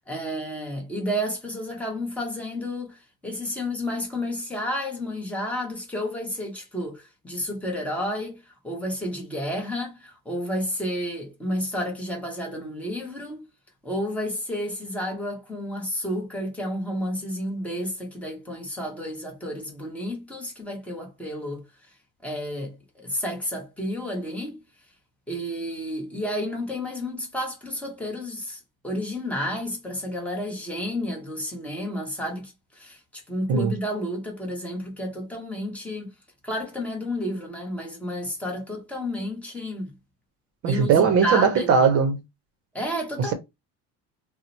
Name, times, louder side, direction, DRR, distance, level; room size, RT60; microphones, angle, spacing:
voice 1, 0.1-13.4 13.8-21.6 22.2-24.6 25.3-36.1 36.4-39.9 40.7-41.7 42.7-43.3, equal, 5° left, 0.8 m, -31 dB
voice 2, 40.6-42.2, right 6 dB, 45° right, 0.6 m, -19 dB
2.9 x 2.0 x 3.9 m
cardioid pair, 155°, 33 cm